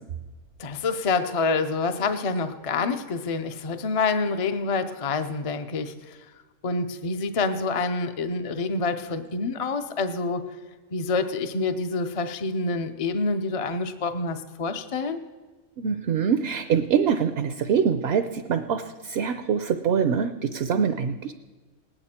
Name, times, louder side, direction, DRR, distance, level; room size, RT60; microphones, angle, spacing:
voice 1, 0.6-6.2 6.6-10.4 10.9-15.2, left 4 dB, 35° left, 8 dB, 0.6 m, -27 dB
voice 2, 15.8-21.3, right 7 dB, 60° right, 8 dB, 0.7 m, -24 dB
19.5 x 9.1 x 4.3 m, 1.3 s
omnidirectional pair, 1.4 m